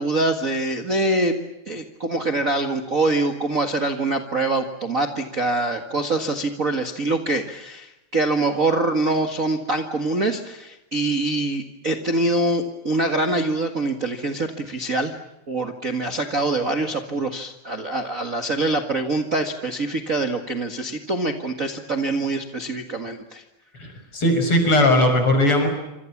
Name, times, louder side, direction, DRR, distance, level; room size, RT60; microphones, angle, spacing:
voice 1, 0.0-1.4 1.7-15.1 15.5-23.4, right 2 dB, 35° right, 6 dB, 1.7 m, -24 dB
voice 2, 23.8-25.7, left 1 dB, 45° left, 6 dB, 6.8 m, -18 dB
27.0 x 27.0 x 7.3 m, 0.93 s
omnidirectional pair, 3.5 m